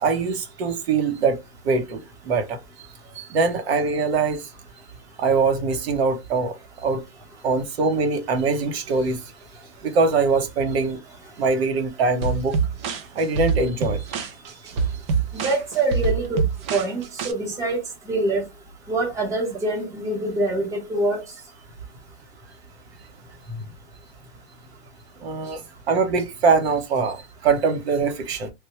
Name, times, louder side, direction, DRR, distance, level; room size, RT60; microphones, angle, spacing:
voice 1, 0.0-1.4 1.6-2.6 3.1-4.4 5.2-6.5 6.8-7.0 7.4-9.2 9.8-11.0 11.4-12.6 13.1-14.0 23.5-23.6 25.2-25.6 25.9-28.5, right 4 dB, 70° right, 1.0 m, -22 dB
sound 1, 12.2-17.3, right 5 dB, 30° right, 0.3 m, -25 dB
voice 2, 15.3-16.4 16.7-17.8 18.1-18.4 18.9-21.2, right 2 dB, 10° right, 0.9 m, -24 dB
3.4 x 2.2 x 2.8 m
supercardioid pair, 155°, 33 cm